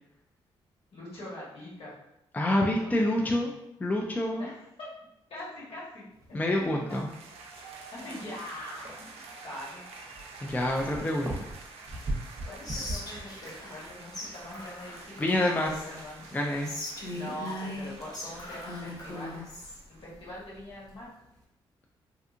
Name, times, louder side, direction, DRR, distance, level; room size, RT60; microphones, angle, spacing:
voice 1, 0.9-2.0 3.0-3.5 4.4-4.6 5.3-6.6 6.9-7.0 7.9-9.1 9.4-9.8 12.4-15.2 15.6-16.2 17.1-19.4 20.0-21.1, left 1 dB, 60° left, -6 dB, 1.3 m, -43 dB
voice 2, 2.3-3.5 3.8-4.5 6.3-7.1 10.4-11.3 15.2-15.8 16.3-16.7, left 1 dB, 15° left, 0 dB, 0.4 m, -27 dB
sound 1, 6.1-21.4, right 1 dB, 30° right, 0.7 m, -44 dB
sound 2, 6.9-20.1, right 3 dB, 70° right, 0.5 m, -49 dB
Whispering, 12.6-13.9 14.1-14.3 14.5-16.1 16.6-19.8, left 1 dB, 35° left, 0.9 m, -39 dB
2.7 x 2.4 x 2.5 m, 0.86 s
supercardioid pair, 60°, 11 cm